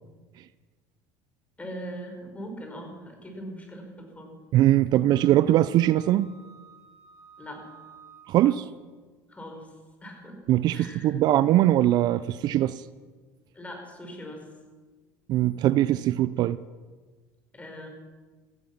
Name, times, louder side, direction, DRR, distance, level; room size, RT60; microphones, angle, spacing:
voice 1, 1.6-4.3 7.4-7.6 9.3-9.7 10.0-10.4 10.7-11.1 13.5-14.5 17.5-17.9, equal, 15° left, 3 dB, 5.0 m, -40 dB
voice 2, 4.5-6.3 8.3-8.7 10.5-12.8 15.3-16.6, right 13 dB, 55° right, 16 dB, 0.5 m, -21 dB
Wind instrument woodwind instrument, 5.1-8.7, right 5 dB, 30° right, 4.1 m, -53 dB
16.0 x 15.0 x 5.9 m, 1.4 s
supercardioid pair, 85°, 8 cm